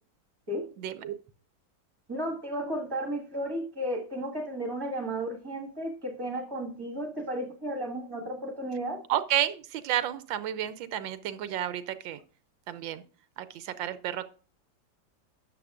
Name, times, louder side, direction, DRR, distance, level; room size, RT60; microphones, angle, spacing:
voice 1, 0.8-1.2 9.1-12.2 12.7-13.0 13.4-14.3, right 11 dB, 85° right, 1.4 m, -31 dB
voice 2, 2.1-9.0, right 1 dB, 15° right, 1.5 m, -33 dB
13.0 x 8.3 x 2.4 m
omnidirectional pair, 2.1 m